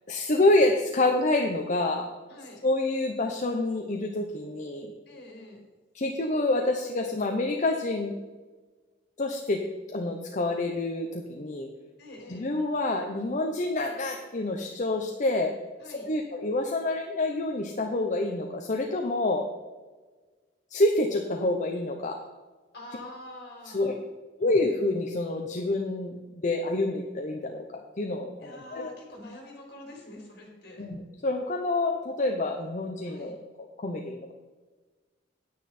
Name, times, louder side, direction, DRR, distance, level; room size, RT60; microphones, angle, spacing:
voice 1, 0.1-2.1 2.6-4.9 5.9-8.2 9.2-9.6 9.9-11.7 12.3-15.5 15.8-19.5 20.7-22.2 23.7-23.9 24.4-28.9 30.8-33.4 33.8-34.3, left 2 dB, 45° left, 3 dB, 0.8 m, -27 dB
voice 2, 2.3-2.6 5.1-5.6 12.0-12.5 15.8-16.1 22.7-24.0 28.4-30.9 33.0-33.3, left 1 dB, 60° left, 0 dB, 3.8 m, -45 dB
9.5 x 9.5 x 4.3 m, 1.3 s
head